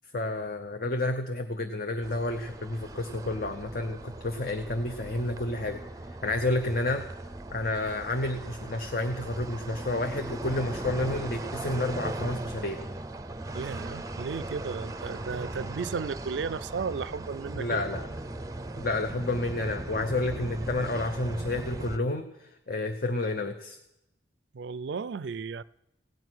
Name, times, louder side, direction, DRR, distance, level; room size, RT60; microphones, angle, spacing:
voice 1, 0.1-5.8 6.2-7.1 7.5-12.8 17.5-18.1 18.8-23.8, left 2 dB, 50° left, 0.8 m, -30 dB
sound 1, 2.0-22.0, right 2 dB, 20° right, 0.5 m, -38 dB
voice 2, 13.5-17.8 24.5-25.6, right 5 dB, 70° right, 0.4 m, -34 dB
17.0 x 9.3 x 6.1 m
head